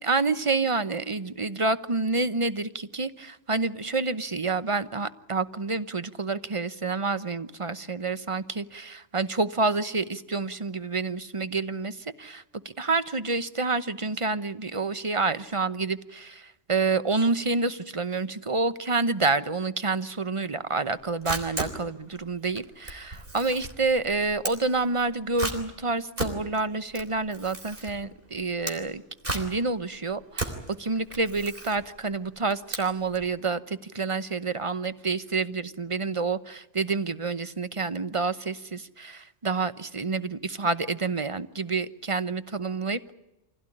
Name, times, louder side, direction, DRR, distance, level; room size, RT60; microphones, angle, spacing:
voice 1, 0.0-29.0 29.3-43.1, right 3 dB, 30° right, 13 dB, 0.9 m, -28 dB
Camera, 20.9-33.3, right 2 dB, 45° right, 3.7 m, -36 dB
25.5 x 16.5 x 9.9 m, 1.0 s
omnidirectional pair, 1.2 m